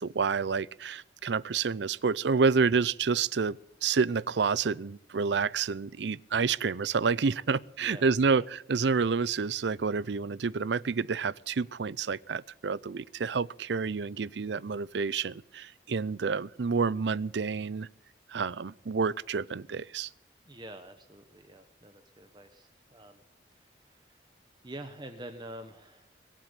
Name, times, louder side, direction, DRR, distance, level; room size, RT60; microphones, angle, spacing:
voice 1, 0.0-17.9 18.3-20.1, right 5 dB, 75° right, 0.5 m, -29 dB
voice 2, 7.8-8.5 20.4-23.2 23.5-24.2 24.6-26.3, right 1 dB, 25° right, 1.1 m, -47 dB
22.5 x 7.5 x 8.2 m
head